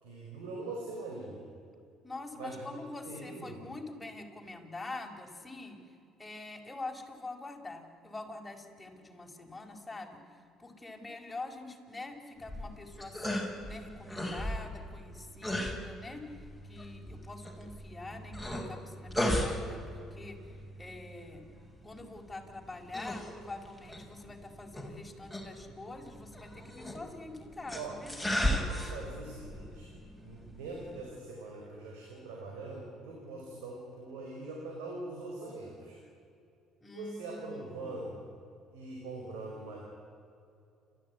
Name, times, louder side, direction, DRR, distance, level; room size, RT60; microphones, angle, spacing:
voice 1, 0.0-1.5 2.3-2.7 3.0-3.6 27.7-28.0 28.5-29.9 30.2-36.0 36.9-38.2 38.7-39.8, right 2 dB, 85° right, -1 dB, 4.8 m, -42 dB
voice 2, 2.0-5.8 6.2-10.2 10.6-20.4 20.8-21.4 21.8-28.1 36.8-37.9, left 2 dB, 15° left, 1 dB, 4.9 m, -45 dB
sound 1, 12.4-31.1, equal, 5° right, 6.0 m, -37 dB
30.0 x 14.0 x 9.7 m, 2.5 s
supercardioid pair, 75°, 0 cm